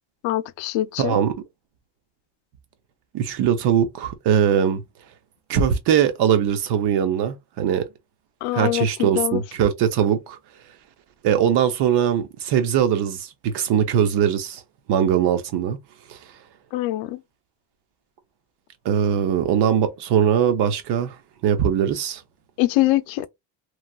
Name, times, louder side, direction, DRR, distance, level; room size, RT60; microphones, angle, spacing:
voice 1, 0.2-1.2 8.4-9.4 16.7-17.2 22.6-23.3, left 15 dB, 85° left, 0.5 m, -23 dB
voice 2, 1.0-1.3 3.1-4.8 5.5-7.9 8.5-10.4 11.2-14.6 14.9-15.8 16.1-16.2 18.8-21.1 21.4-22.2, right 8 dB, 60° right, 0.8 m, -21 dB
3.1 x 2.4 x 2.3 m
cardioid pair, 145°, 45 cm